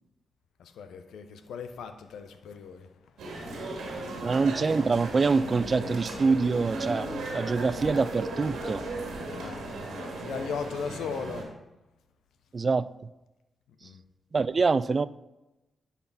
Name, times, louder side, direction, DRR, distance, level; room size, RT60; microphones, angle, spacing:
voice 1, 0.6-2.9 9.3-11.5 13.8-14.0, left 6 dB, 80° left, 9 dB, 0.6 m, -38 dB
sound 1, 3.2-11.4, right 2 dB, 80° right, 1.8 m, -36 dB
voice 2, 4.2-8.8 12.5-12.9 14.3-15.1, right 4 dB, 45° right, 17 dB, 0.3 m, -25 dB
10.0 x 4.2 x 4.1 m, 0.98 s
supercardioid pair, 45°, 0 cm